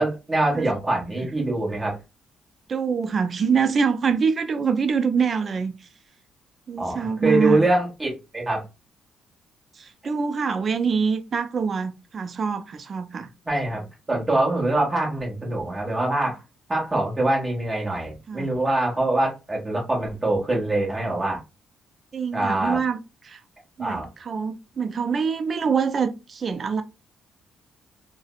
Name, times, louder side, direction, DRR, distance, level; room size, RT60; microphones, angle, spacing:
voice 1, 0.0-2.0 6.8-7.0 7.2-8.6 13.5-13.8 14.1-16.4 16.7-21.4 22.3-22.8 23.8-24.1, right 2 dB, 25° right, 1.1 m, -24 dB
voice 2, 0.9-1.3 2.7-5.7 6.7-7.6 9.8-13.3 18.3-18.5 22.1-23.4 23.8-26.8, right 5 dB, 45° right, 0.4 m, -25 dB
3.2 x 2.0 x 2.2 m
cardioid pair, 90°, 0 cm